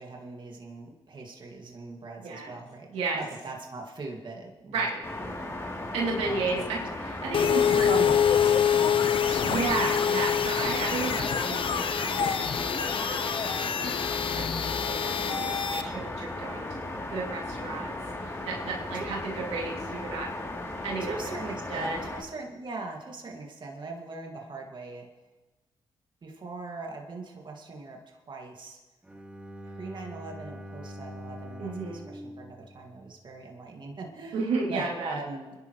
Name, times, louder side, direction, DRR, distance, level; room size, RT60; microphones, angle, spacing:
voice 1, 0.0-2.9 3.1-4.9 5.2-5.3 6.2-6.6 7.9-8.5 8.8-9.4 18.9-19.1 21.0-25.1 26.2-28.8 29.6-35.6, right 3 dB, 50° right, 0 dB, 2.1 m, -40 dB
voice 2, 2.2-2.5 2.9-3.2 4.7-5.0 5.9-8.0 9.4-16.8 17.1-20.3 20.8-21.2 21.7-22.0 31.6-32.0 34.3-35.2, right 3 dB, 90° right, -3 dB, 2.8 m, -33 dB
sound 1, 5.0-22.2, left 1 dB, 25° left, 3.1 m, -36 dB
sound 2, 7.3-15.8, left 8 dB, 60° left, 0.9 m, -26 dB
Bowed string instrument, 29.0-33.1, equal, 15° right, 2.2 m, -43 dB
25.0 x 11.0 x 3.2 m, 1.1 s
cardioid pair, 60°, 10 cm